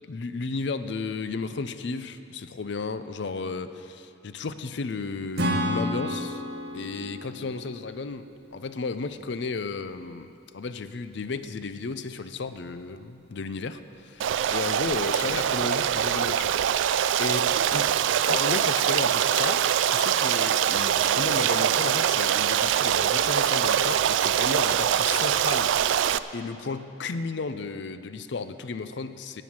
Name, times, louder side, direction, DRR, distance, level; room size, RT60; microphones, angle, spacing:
voice 1, 0.1-6.4 6.7-10.3 10.5-25.8 26.3-29.4, left 4 dB, 60° left, 11 dB, 0.5 m, -33 dB
Acoustic guitar / Strum, 5.4-8.9, equal, 50° right, 1.0 m, -31 dB
Stream, 14.2-26.2, right 9 dB, 70° right, 0.3 m, -23 dB
13.0 x 9.1 x 6.2 m, 2.6 s
head